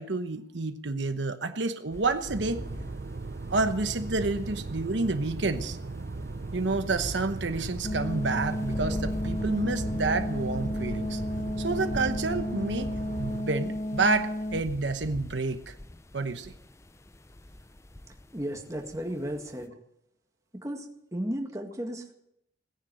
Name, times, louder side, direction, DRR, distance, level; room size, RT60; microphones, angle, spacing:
voice 1, 0.0-2.6 3.5-5.8 6.5-11.2 11.6-12.9 13.2-15.8 16.1-16.5, right 3 dB, 75° right, 9 dB, 1.0 m, -29 dB
sound 1, 1.9-19.6, left 1 dB, 15° left, 0.6 m, -43 dB
sound 2, 2.3-13.4, right 3 dB, 55° right, 0.6 m, -38 dB
sound 3, 7.8-14.6, left 1 dB, 40° left, 1.3 m, -33 dB
voice 2, 18.3-19.8 20.5-22.1, equal, 15° right, 3 dB, 1.9 m, -34 dB
18.0 x 10.0 x 7.8 m, 0.77 s
head